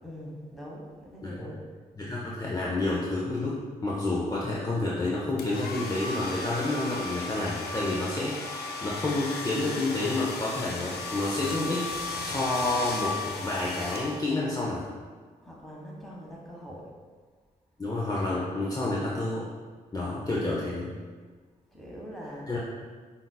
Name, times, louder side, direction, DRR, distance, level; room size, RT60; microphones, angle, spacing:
voice 1, 0.0-1.6 15.4-16.9 20.0-20.2 21.7-22.5, equal, ahead, -3 dB, 1.2 m, -43 dB
voice 2, 2.0-11.9 12.2-14.9 17.8-19.5 19.9-20.9 22.5-22.6, left 2 dB, 20° left, -6 dB, 0.6 m, -29 dB
sound 1, 5.4-14.5, left 2 dB, 75° left, 0.4 m, -35 dB
5.4 x 2.6 x 2.2 m, 1.5 s
supercardioid pair, 50°, 17 cm